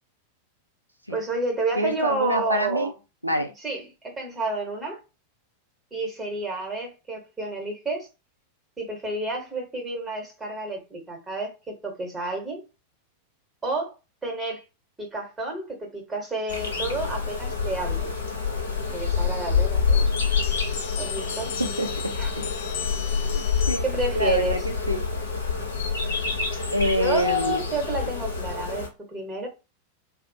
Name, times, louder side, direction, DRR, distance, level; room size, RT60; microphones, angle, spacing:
voice 1, 1.1-2.9 3.6-5.0 5.9-8.1 8.8-12.6 13.6-13.9 14.2-14.6 15.0-18.1 18.9-20.1 21.0-21.5 22.2-22.3 23.8-24.6 26.9-29.5, right 2 dB, 10° right, 1.1 m, -30 dB
voice 2, 1.8-2.9 3.2-3.5 21.6-21.9 23.2-23.8 24.2-25.0 26.7-27.6, equal, 90° right, 0.4 m, -25 dB
sound 1, 16.5-28.9, left 5 dB, 65° left, 0.7 m, -27 dB
sound 2, 20.2-24.1, left 9 dB, 50° left, 0.3 m, -37 dB
2.4 x 2.0 x 2.6 m
figure-of-eight pair, 90°, 0 cm